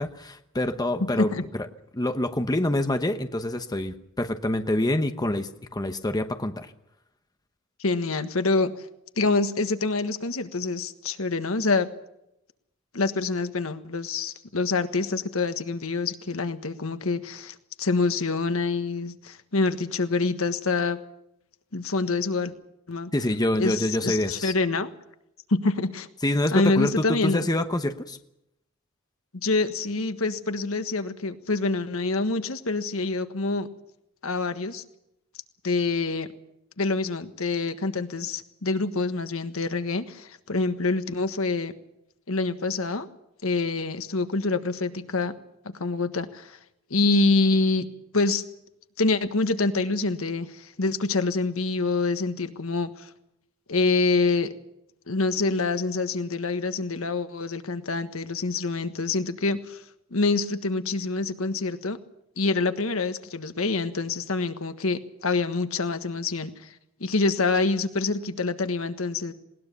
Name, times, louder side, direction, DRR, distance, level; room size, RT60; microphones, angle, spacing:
voice 1, 0.0-1.7 1.9-6.7 23.1-24.5 26.2-28.2, left 1 dB, 20° left, 8 dB, 1.0 m, -26 dB
voice 2, 7.8-8.7 9.2-11.9 12.9-21.0 21.7-22.5 22.9-23.1 23.6-24.9 25.5-26.1 26.5-27.4 29.4-33.7 34.2-34.8 35.6-36.3 36.8-41.7 42.3-43.1 43.4-45.3 45.8-46.6 46.9-47.9 48.1-48.4 49.0-53.1 53.7-54.5 55.1-59.8 60.1-62.0 62.4-66.7 67.0-69.3, left 3 dB, 80° left, 9 dB, 1.4 m, -26 dB
20.5 x 19.0 x 6.9 m, 0.82 s
head